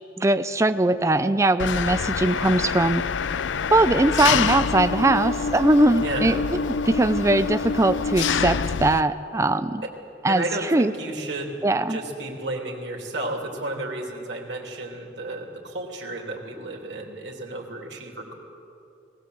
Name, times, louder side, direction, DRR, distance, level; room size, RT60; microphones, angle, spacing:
voice 1, 0.2-3.0 3.7-6.6 6.9-9.9 10.2-10.9 11.6-12.0, right 2 dB, 15° right, 10 dB, 0.4 m, -21 dB
Engine, 1.6-9.0, left 6 dB, 75° left, 0.5 m, -26 dB
voice 2, 6.0-6.4 10.3-11.6 11.9-18.3, right 2 dB, 65° right, 0 dB, 2.8 m, -32 dB
19.0 x 17.5 x 7.8 m, 2.8 s
head